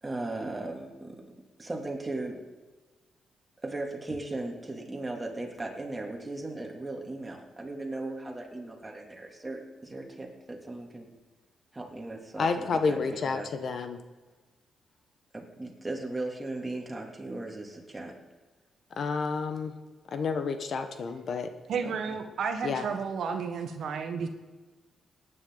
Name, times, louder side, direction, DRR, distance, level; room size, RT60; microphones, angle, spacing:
voice 1, 0.0-1.3 1.6-2.4 3.6-11.1 11.7-13.5 15.3-18.2 21.8-21.9, right 2 dB, 20° right, 0 dB, 2.8 m, -37 dB
voice 2, 12.4-14.0 19.0-19.7 20.1-21.5 22.6-22.8, left 4 dB, 60° left, 8 dB, 1.2 m, -30 dB
voice 3, 21.7-24.3, right 5 dB, 70° right, 6 dB, 1.3 m, -32 dB
18.0 x 9.8 x 4.0 m, 1.3 s
cardioid pair, 75°, 0 cm